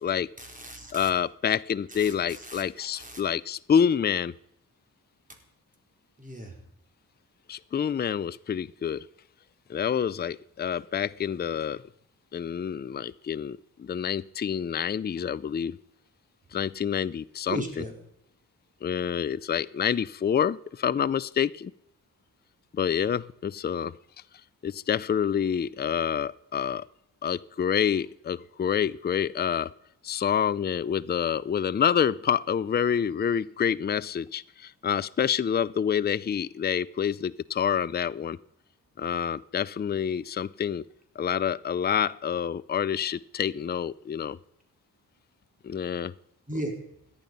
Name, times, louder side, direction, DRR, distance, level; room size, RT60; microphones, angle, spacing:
voice 1, 0.4-1.1 2.0-3.2 6.2-6.6 17.5-17.9 46.5-46.8, right 1 dB, 20° right, 2 dB, 4.2 m, -37 dB
voice 2, 0.9-4.3 7.5-9.1 9.7-11.8 12.3-15.8 16.5-17.8 18.8-21.7 22.7-24.0 24.6-26.9 27.2-29.7 30.0-38.4 39.0-40.8 41.2-44.4 45.6-46.1, left 8 dB, 30° left, 17 dB, 0.4 m, -27 dB
17.5 x 11.0 x 5.4 m, 0.76 s
cardioid pair, 70°, 35 cm